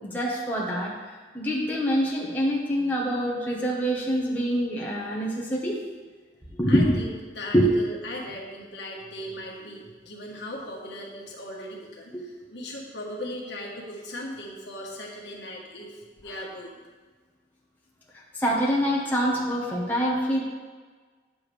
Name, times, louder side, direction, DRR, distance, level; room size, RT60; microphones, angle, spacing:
voice 1, 0.0-5.8 6.5-6.8 7.5-7.7 12.1-12.2 18.4-20.4, equal, 10° left, -4 dB, 1.3 m, -25 dB
voice 2, 6.7-16.8, left 1 dB, 80° left, -2 dB, 1.6 m, -38 dB
9.3 x 6.9 x 3.4 m, 1.4 s
head